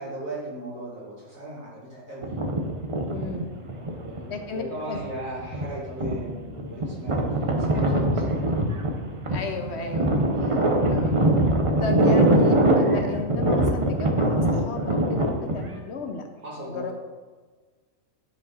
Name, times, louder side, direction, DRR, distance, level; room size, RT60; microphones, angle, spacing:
voice 1, 0.0-2.3 3.8-4.2 4.5-8.4 16.4-16.9, right 1 dB, 80° right, -7 dB, 3.0 m, -37 dB
sound 1, 2.2-4.4 4.9-15.8, right 1 dB, 30° right, 0.6 m, -23 dB
voice 2, 3.1-3.5 4.3-5.0 7.8-8.1 9.3-11.2 11.8-16.3 16.6-16.9, left 3 dB, 60° left, 5 dB, 0.9 m, -34 dB
10.0 x 4.9 x 4.1 m, 1.4 s
omnidirectional pair, 1.4 m